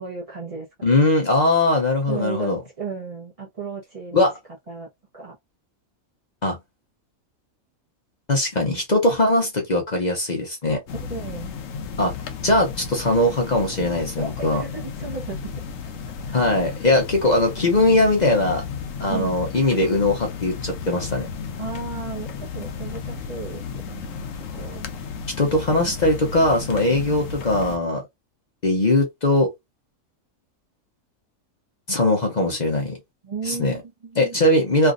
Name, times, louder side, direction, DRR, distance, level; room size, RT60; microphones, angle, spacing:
voice 1, 0.0-0.9 2.1-4.3 4.7-4.9 5.1-5.4 11.1-11.5 14.2-15.5 16.3-16.7 19.1-19.4 21.6-24.8 25.7-26.0 33.2-34.4, right 5 dB, 30° right, 0.8 m, -35 dB
voice 2, 0.8-2.6 4.1-4.3 6.4-6.6 8.3-10.8 12.0-12.1 12.4-14.6 16.3-18.6 19.0-21.3 25.4-28.0 28.6-29.5 31.9-33.0 33.4-33.8 34.2-34.9, left 2 dB, 40° left, 0.7 m, -20 dB
sound 1, 10.9-27.8, left 6 dB, 70° left, 1.0 m, -34 dB
3.2 x 2.5 x 2.5 m
omnidirectional pair, 1.5 m